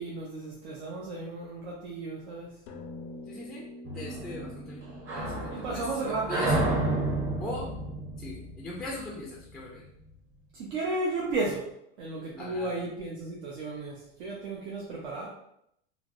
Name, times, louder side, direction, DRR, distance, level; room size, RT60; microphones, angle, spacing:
voice 1, 0.0-2.5 5.5-6.6 10.6-11.7 12.0-15.3, right 3 dB, 70° right, -4 dB, 0.7 m, -34 dB
sound 1, 2.7-7.3, left 2 dB, 85° left, 0.6 m, -47 dB
voice 2, 3.3-6.8 7.4-7.7 8.2-9.8 12.3-12.8, left 1 dB, ahead, -3 dB, 0.3 m, -40 dB
sound 2, 3.8-9.3, right 2 dB, 35° right, 0.9 m, -31 dB
3.2 x 2.0 x 2.4 m, 0.76 s
hypercardioid pair, 105°, 35 cm